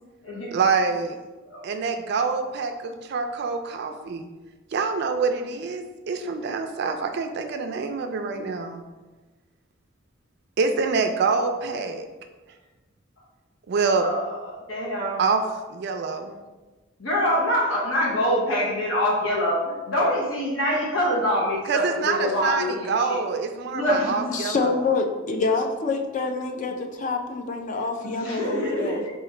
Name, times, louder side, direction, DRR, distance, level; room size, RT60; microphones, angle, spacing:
voice 1, 0.5-1.2 1.6-4.3 4.7-8.8 10.6-12.0 13.7-14.1 15.2-15.4 15.7-16.3 21.7-24.7, right 4 dB, 55° right, 6 dB, 0.3 m, -26 dB
voice 2, 14.0-15.2 17.0-23.2 23.7-24.3 28.1-29.1, equal, 85° left, -4 dB, 0.9 m, -25 dB
voice 3, 24.3-29.0, left 4 dB, 40° left, 5 dB, 0.4 m, -26 dB
3.8 x 2.5 x 4.2 m, 1.2 s
head